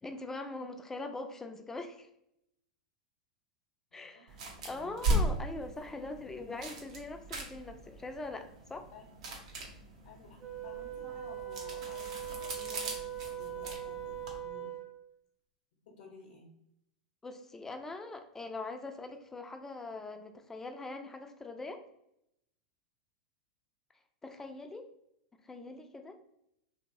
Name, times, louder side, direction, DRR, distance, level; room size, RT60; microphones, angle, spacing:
voice 1, 0.0-2.1 3.9-4.4 4.6-8.9 17.2-21.8 24.2-24.9 25.4-26.2, left 2 dB, 10° left, 6 dB, 0.4 m, -42 dB
voice 2, 3.9-4.2 4.5-5.1 8.9-9.0 10.0-14.7 15.9-16.5, left 4 dB, 60° left, -2 dB, 0.8 m, -54 dB
sound 1, 4.3-14.4, right 1 dB, 65° right, 0.8 m, -38 dB
Wind instrument woodwind instrument, 10.4-15.0, right 9 dB, 35° right, 0.7 m, -41 dB
2.8 x 2.8 x 2.6 m, 0.78 s
hypercardioid pair, 95°, 4 cm